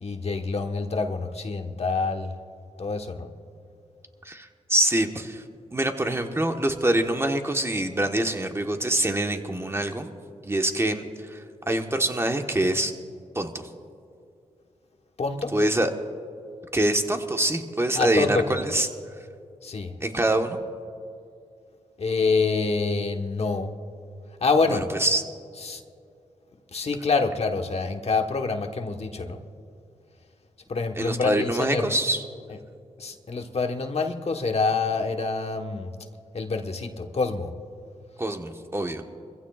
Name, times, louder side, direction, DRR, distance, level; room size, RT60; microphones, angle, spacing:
voice 1, 0.0-2.4 2.8-3.3 15.2-15.5 17.9-18.6 19.6-20.0 22.0-23.7 24.4-24.9 25.6-25.8 26.7-29.4 30.7-31.9 33.0-35.9 36.3-37.5, left 4 dB, 50° left, 4 dB, 1.3 m, -26 dB
voice 2, 4.2-5.4 5.7-10.1 10.4-12.9 13.3-13.7 15.5-15.9 16.7-18.9 20.0-20.6 24.7-25.2 31.0-32.2 38.2-39.0, right 1 dB, 20° right, 5 dB, 1.3 m, -25 dB
24.0 x 15.5 x 2.4 m, 2.5 s
cardioid pair, 55°, 13 cm